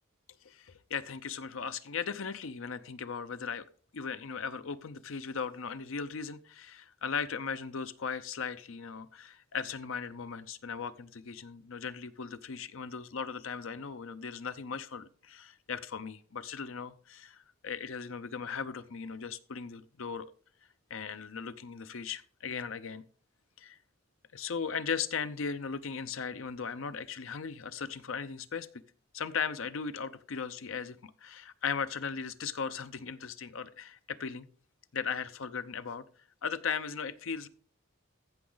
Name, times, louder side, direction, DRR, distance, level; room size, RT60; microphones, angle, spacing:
voice 1, 0.4-20.3 20.9-23.0 23.6-23.8 24.3-28.7 29.1-34.5 34.9-36.0 36.4-37.5, left 6 dB, 70° left, 12 dB, 0.6 m, -37 dB
15.0 x 6.0 x 3.9 m, 0.44 s
head